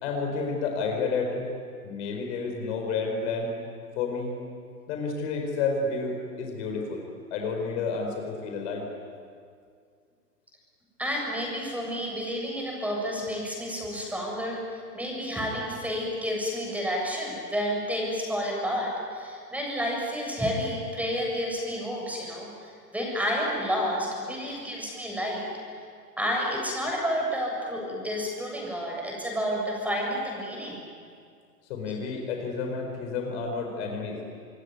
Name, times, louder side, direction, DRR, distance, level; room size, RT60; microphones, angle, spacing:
voice 1, 0.0-1.5 1.8-3.5 4.0-4.3 4.9-7.0 7.3-8.9 31.7-34.2, left 4 dB, 45° left, 3 dB, 4.7 m, -30 dB
voice 2, 11.0-14.6 14.9-22.5 22.9-25.5 26.2-30.8, equal, 5° right, -1 dB, 7.5 m, -30 dB
26.5 x 22.5 x 9.5 m, 2.2 s
figure-of-eight pair, 110°, 48 cm